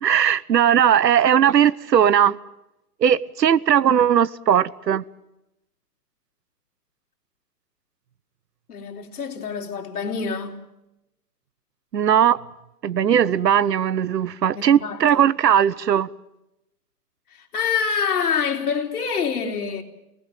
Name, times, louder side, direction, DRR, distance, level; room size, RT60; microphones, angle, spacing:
voice 1, 0.0-2.4 3.0-5.0 11.9-12.4 12.8-16.1, right 9 dB, 85° right, 1.2 m, -18 dB
voice 2, 8.7-10.6 14.5-15.2 17.3-19.8, left 6 dB, 65° left, 4.0 m, -26 dB
27.5 x 19.5 x 7.6 m
hypercardioid pair, 170°, 48 cm